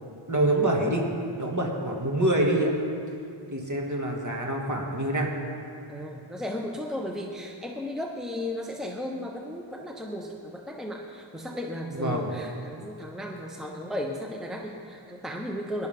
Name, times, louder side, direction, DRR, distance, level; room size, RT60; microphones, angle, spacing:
voice 1, 0.1-1.0 1.4-2.7 3.5-5.3 11.9-12.3, right 1 dB, 35° right, -1 dB, 2.2 m, -26 dB
voice 2, 5.9-15.9, left 1 dB, ahead, 1 dB, 0.9 m, -35 dB
19.0 x 10.5 x 3.7 m, 2.5 s
wide cardioid pair, 40°, 50 cm